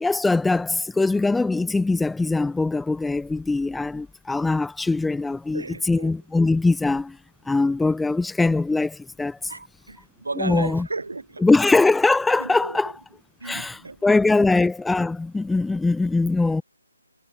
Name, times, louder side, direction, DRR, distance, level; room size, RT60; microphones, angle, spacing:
voice 1, 0.0-7.2 7.5-9.5 10.4-10.9 11.4-12.9 13.4-16.6, left 3 dB, 5° left, 0.7 m, -22 dB
voice 2, 5.5-6.1 9.5-11.5 12.4-12.8 13.4-14.0, right 3 dB, 65° right, 1.9 m, -34 dB
figure-of-eight pair, 145°, 0 cm